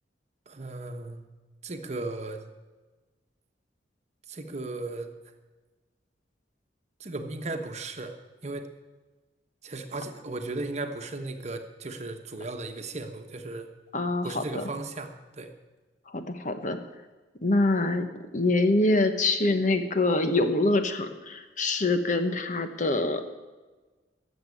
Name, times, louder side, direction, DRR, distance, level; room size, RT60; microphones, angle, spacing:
voice 1, 0.5-1.3 1.6-2.4 4.3-5.1 7.0-8.1 8.4-8.7 9.6-13.7 14.2-15.5, right 2 dB, 40° right, 6 dB, 1.2 m, -36 dB
voice 2, 13.9-14.6 16.1-16.8 17.4-23.2, left 2 dB, 45° left, 8 dB, 1.1 m, -25 dB
13.5 x 7.5 x 9.8 m, 1.2 s
head